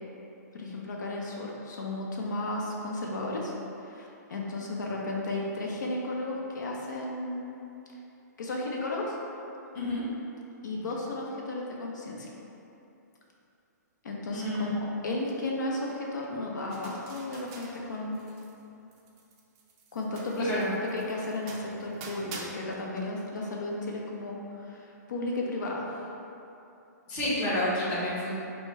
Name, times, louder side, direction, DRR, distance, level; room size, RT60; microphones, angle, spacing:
voice 1, 0.5-3.5 3.8-7.6 8.4-9.2 10.6-12.3 14.0-18.2 19.9-20.7 20.9-26.0, left 2 dB, 80° left, -2 dB, 0.7 m, -34 dB
voice 2, 14.3-14.7 20.4-20.7 27.1-28.3, left 1 dB, 20° left, -8 dB, 0.9 m, -29 dB
sound 1, 16.7-18.6 18.9-22.5, right 4 dB, 20° right, 0.4 m, -47 dB
4.6 x 2.1 x 4.5 m, 2.8 s
hypercardioid pair, 165°, 10 cm